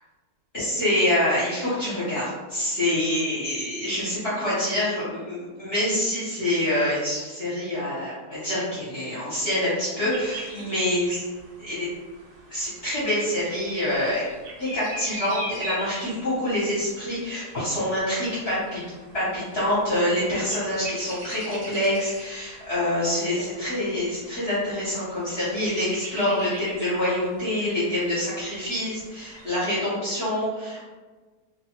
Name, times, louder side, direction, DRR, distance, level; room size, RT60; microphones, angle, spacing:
voice 1, 0.5-11.2 11.6-11.9 12.5-14.2 14.6-18.8 19.1-30.8, left 1 dB, 50° left, -10 dB, 0.9 m, -26 dB
sound 1, 10.1-29.8, right 1 dB, 65° right, 0.8 m, -42 dB
2.6 x 2.2 x 2.8 m, 1.3 s
omnidirectional pair, 1.7 m